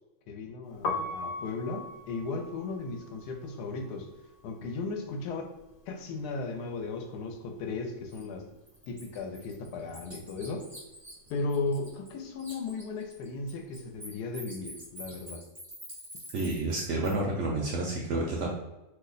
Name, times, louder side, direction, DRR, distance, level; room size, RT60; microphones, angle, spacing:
voice 1, 0.3-4.1 4.4-5.5 5.9-8.5 8.9-10.7 11.3-15.4, left 3 dB, 90° left, 4 dB, 1.2 m, -36 dB
Piano, 0.7-6.7 6.9-8.5 8.8-15.2, left 2 dB, 70° left, 0.9 m, -41 dB
Bird, 8.1-8.2 8.7-12.1 12.4-17.1, equal, 25° right, 0.4 m, -46 dB
voice 2, 16.3-18.5, right 2 dB, 70° right, -1 dB, 0.7 m, -30 dB
2.7 x 2.2 x 3.8 m, 1.0 s
omnidirectional pair, 1.7 m